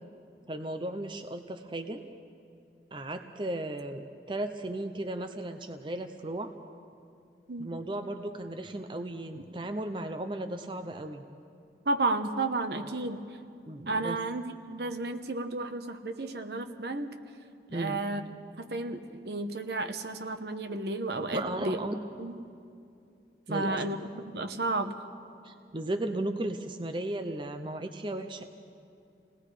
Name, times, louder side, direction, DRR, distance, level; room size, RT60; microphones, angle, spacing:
voice 1, 0.5-2.0 2.9-6.5 7.6-11.2 12.7-13.0 13.7-14.2 17.7-18.0 21.3-22.0 23.5-23.8 25.4-28.4, right 1 dB, 30° right, 6 dB, 0.7 m, -35 dB
voice 2, 11.8-13.2 13.9-17.1 17.7-18.2 18.6-21.8 22.2-22.3 23.5-24.9, right 2 dB, 70° right, 7 dB, 1.1 m, -32 dB
28.5 x 19.0 x 5.0 m, 2.5 s
head